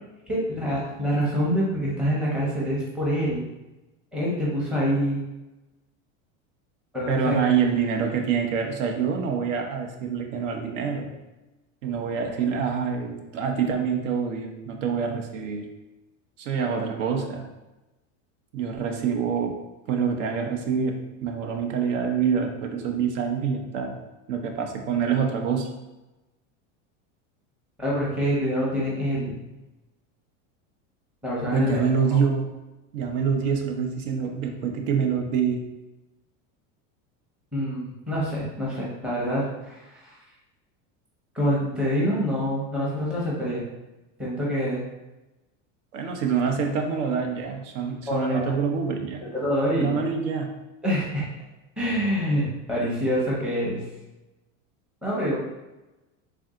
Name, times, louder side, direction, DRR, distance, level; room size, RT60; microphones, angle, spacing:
voice 1, 0.3-3.4 4.1-5.2 6.9-7.4 27.8-29.4 31.2-31.8 32.1-32.2 37.5-40.2 41.3-43.6 44.2-44.8 48.1-48.4 49.3-49.9 50.8-51.2 51.8-53.8 55.0-55.4, equal, 5° right, -6 dB, 0.6 m, -26 dB
voice 2, 7.1-11.1 11.8-15.7 16.4-17.5 18.5-19.6 19.9-24.0 24.3-25.7 31.5-32.5 32.9-35.6 45.9-49.3 49.7-50.5, right 6 dB, 75° right, 3 dB, 0.7 m, -26 dB
3.4 x 2.6 x 3.6 m, 1.0 s
supercardioid pair, 160°, 38 cm